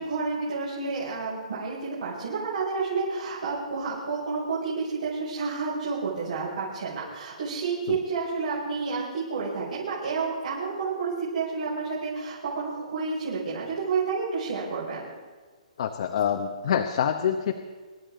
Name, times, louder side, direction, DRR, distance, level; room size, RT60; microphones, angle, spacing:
voice 1, 0.0-15.1, right 4 dB, 75° right, -9 dB, 6.3 m, -30 dB
voice 2, 15.8-17.6, left 8 dB, 55° left, 4 dB, 1.1 m, -26 dB
26.5 x 12.0 x 3.9 m, 1.4 s
hypercardioid pair, 155°, 4 cm